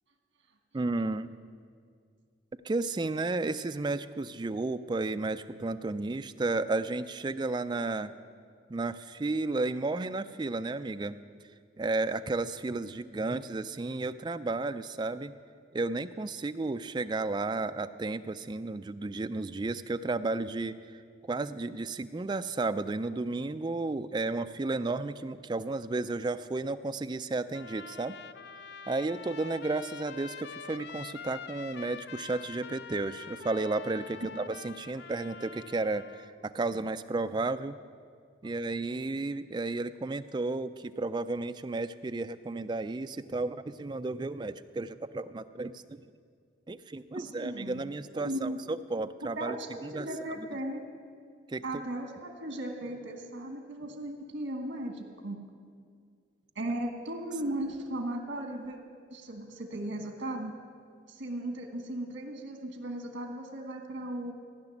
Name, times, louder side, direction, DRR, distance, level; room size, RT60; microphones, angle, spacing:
voice 1, 0.7-1.3 2.6-8.1 8.7-11.2 11.8-15.3 15.7-20.8 21.2-28.2 28.9-37.8 38.4-46.0 46.7-49.6 49.8-50.0 50.4-50.5 51.5-51.8, right 3 dB, 25° right, 10 dB, 0.3 m, -33 dB
Trumpet, 27.5-36.3, left 6 dB, 55° left, 0.4 m, -45 dB
voice 2, 47.1-47.8 48.1-48.6 49.4-50.8 51.6-55.4 56.5-58.8 59.1-60.6 61.1-64.3, right 1 dB, 80° right, 3 dB, 1.4 m, -36 dB
15.5 x 5.9 x 9.9 m, 2.2 s
head